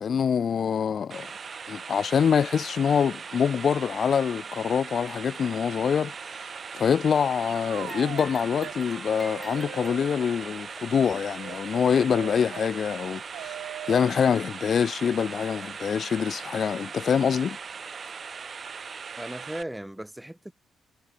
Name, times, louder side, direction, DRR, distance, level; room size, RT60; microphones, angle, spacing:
voice 1, 0.0-1.3 1.7-6.1 6.7-13.5 13.9-17.6, left 7 dB, 50° left, 0.6 m, -25 dB
sound 1, 1.1-19.6, right 5 dB, 40° right, 0.8 m, -39 dB
sound 2, 7.4-8.3 8.6-8.8 9.1-10.1 11.4-14.1, right 14 dB, 85° right, 1.2 m, -41 dB
sound 3, 7.8-10.6 11.6-11.7 12.5-12.6 13.5-13.6, left 1 dB, 10° left, 2.7 m, -46 dB
voice 2, 19.2-20.5, right 1 dB, 5° right, 4.9 m, -37 dB
cardioid pair, 90°, 0 cm